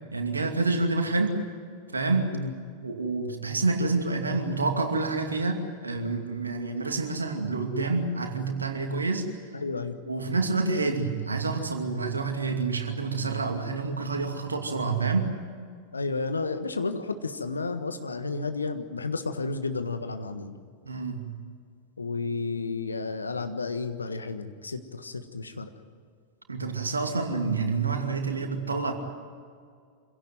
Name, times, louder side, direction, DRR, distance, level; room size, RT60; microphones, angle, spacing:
voice 1, 0.1-1.4 1.9-2.4 2.8-9.3 10.1-15.3 20.9-21.3 26.5-28.9, right 3 dB, 75° right, 5 dB, 2.5 m, -28 dB
voice 2, 9.5-10.0 15.9-20.6 22.0-25.7, left 3 dB, 75° left, 9 dB, 1.5 m, -32 dB
26.0 x 17.0 x 9.4 m, 2.2 s
figure-of-eight pair, 90°, 0 cm